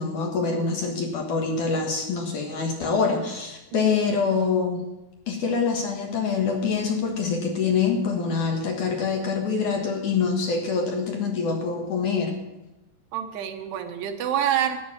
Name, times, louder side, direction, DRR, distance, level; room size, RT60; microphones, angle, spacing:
voice 1, 0.0-4.8 5.3-12.3, left 5 dB, 60° left, 2 dB, 2.4 m, -25 dB
voice 2, 13.1-14.8, right 10 dB, 75° right, 6 dB, 3.2 m, -27 dB
13.5 x 10.5 x 7.3 m, 0.99 s
omnidirectional pair, 4.9 m